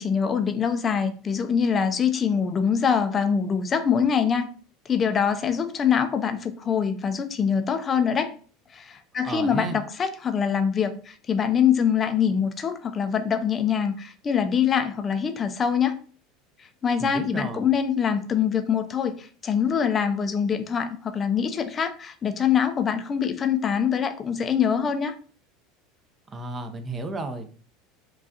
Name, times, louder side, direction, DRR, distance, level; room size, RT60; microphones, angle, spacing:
voice 1, 0.0-4.5 4.9-8.3 8.7-16.0 16.6-25.2, left 7 dB, 30° left, 9 dB, 0.4 m, -24 dB
voice 2, 9.2-9.8 17.0-17.7 26.3-27.5, right 3 dB, 30° right, 8 dB, 0.6 m, -33 dB
4.7 x 2.4 x 2.7 m, 0.41 s
hypercardioid pair, 90°, 0 cm